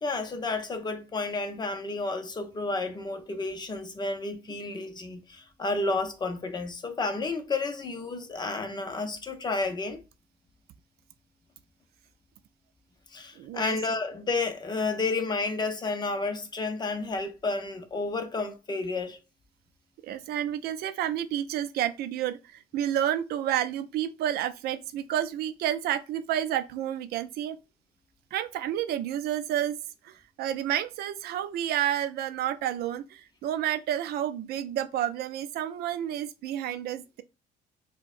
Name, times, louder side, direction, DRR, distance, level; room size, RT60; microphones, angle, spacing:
voice 1, 0.0-10.0 13.1-19.2, left 3 dB, 25° left, 0.7 m, -31 dB
voice 2, 13.4-13.8 20.0-27.6 28.3-29.8 30.0-37.2, right 11 dB, 70° right, 0.4 m, -30 dB
4.5 x 2.1 x 2.5 m
cardioid pair, 110°, 17 cm